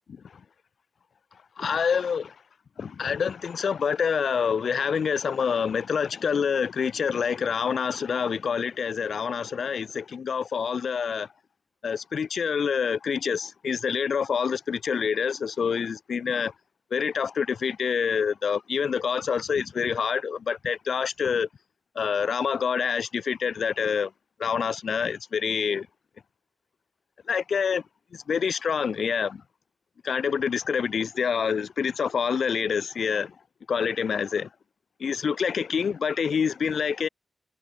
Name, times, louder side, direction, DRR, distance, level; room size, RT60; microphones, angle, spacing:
voice 1, 1.6-2.3 2.8-11.3 11.8-16.5 16.9-21.5 21.9-24.1 24.4-25.9 27.3-27.8 28.1-29.4 30.0-33.3 33.7-34.5 35.0-37.1, left 6 dB, 80° left, 1.0 m, -27 dB
wide cardioid pair, 115°, 0 cm